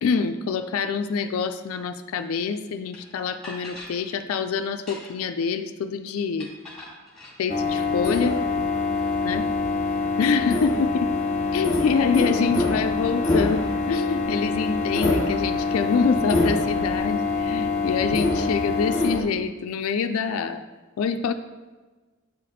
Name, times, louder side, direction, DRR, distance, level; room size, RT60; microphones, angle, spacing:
voice 1, 0.0-6.5 7.4-8.4 9.2-9.5 10.2-11.1 11.5-20.6 21.0-21.3, left 5 dB, 85° left, 8 dB, 0.4 m, -26 dB
sound 1, 2.9-3.0 3.4-4.0 4.7-5.3 6.4-7.4, left 2 dB, 5° left, 1.9 m, -41 dB
sound 2, 7.5-19.2, left 3 dB, 35° left, 0.8 m, -24 dB
8.1 x 4.2 x 4.0 m, 1.3 s
head